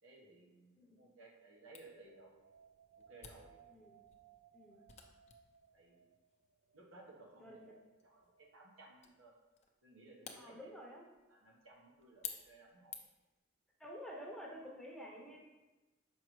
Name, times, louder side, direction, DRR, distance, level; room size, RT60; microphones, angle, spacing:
voice 1, 0.0-2.3 3.0-3.6 4.6-4.8 5.7-6.0 6.7-7.6 8.0-9.3 9.8-10.7 11.3-13.0 15.2-15.3, right 2 dB, 85° right, -1 dB, 1.3 m, -59 dB
voice 2, 0.8-1.1 3.7-4.0 4.5-4.8 7.4-7.7 10.4-11.1 13.8-15.4, equal, ahead, -2 dB, 0.7 m, -50 dB
Camera, 1.7-13.3, left 7 dB, 35° left, 0.5 m, -55 dB
sound 1, 2.0-8.5, right 7 dB, 60° right, 0.4 m, -66 dB
6.1 x 5.0 x 3.1 m, 1.1 s
head